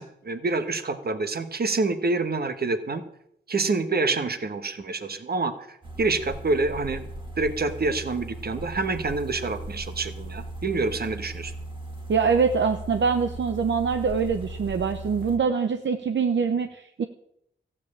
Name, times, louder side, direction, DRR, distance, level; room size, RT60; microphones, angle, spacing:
voice 1, 0.0-3.0 3.5-7.1 7.4-11.5, right 3 dB, 50° right, 10 dB, 1.4 m, -27 dB
sound 1, 5.8-15.4, right 1 dB, 25° right, 1.9 m, -38 dB
voice 2, 12.1-17.0, right 5 dB, 65° right, 7 dB, 0.8 m, -24 dB
15.0 x 7.3 x 8.7 m, 0.74 s
wide cardioid pair, 100°, 20 cm